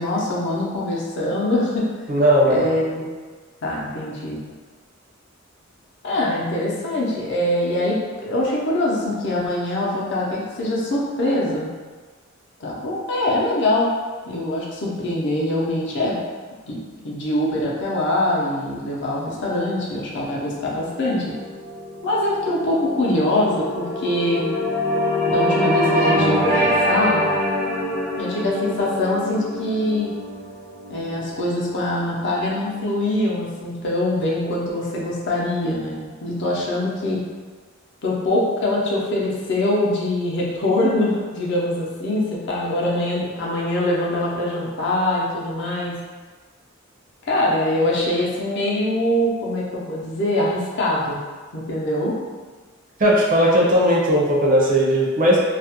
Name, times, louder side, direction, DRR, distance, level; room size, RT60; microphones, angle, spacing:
voice 1, 0.0-1.9 2.5-3.0 3.6-4.4 6.0-11.7 12.6-13.9 14.2-16.2 16.7-21.3 22.0-24.5 25.3-27.3 28.2-30.1 30.9-37.2 38.0-46.0 47.2-51.2 51.5-52.1, left 1 dB, 60° left, -4 dB, 0.5 m, -23 dB
voice 2, 2.1-2.7 53.0-55.4, equal, 40° right, -3 dB, 0.5 m, -17 dB
sound 1, 20.6-32.9, equal, 10° left, 0.5 m, -25 dB
2.3 x 2.0 x 2.8 m, 1.4 s
head